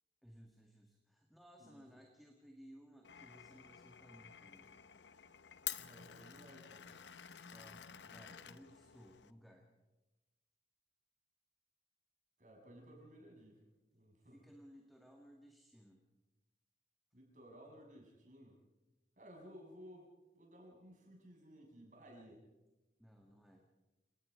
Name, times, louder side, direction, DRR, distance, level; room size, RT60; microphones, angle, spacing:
voice 1, 0.2-4.7 7.0-7.2 7.5-9.7 14.2-16.0 23.0-23.7, equal, ahead, 1 dB, 1.8 m, -60 dB
Glass, 3.0-9.3, left 11 dB, 90° left, 0.9 m, -50 dB
voice 2, 5.8-6.9 12.4-13.6 13.9-14.4 17.1-18.6 19.2-20.1 20.3-22.4, equal, 45° right, -1 dB, 6.8 m, -57 dB
28.5 x 18.5 x 5.3 m, 1.1 s
head